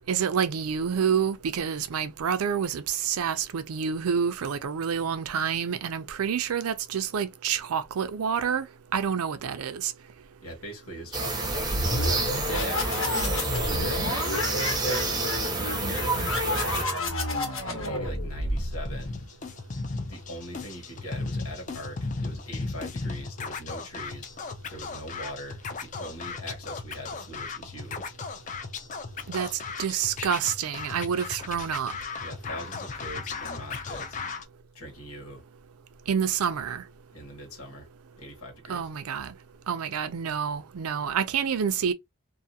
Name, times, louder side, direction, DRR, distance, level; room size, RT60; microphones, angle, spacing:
voice 1, 0.1-8.7 8.9-9.9 29.3-31.9 36.1-36.8 38.7-39.3 39.7-41.9, right 7 dB, 85° right, 0.4 m, -28 dB
voice 2, 10.4-14.5 14.8-17.0 17.7-19.2 20.1-24.3 24.7-28.1 32.2-34.2 34.7-35.5 37.1-37.9 38.1-38.9, equal, 85° left, 1.4 m, -41 dB
sound 1, 11.1-16.8, right 3 dB, 20° right, 0.6 m, -29 dB
sound 2, 11.4-19.1, left 1 dB, 70° left, 1.0 m, -30 dB
Scratching (performance technique), 18.5-34.4, left 4 dB, 35° left, 0.4 m, -36 dB
2.5 x 2.4 x 2.7 m
head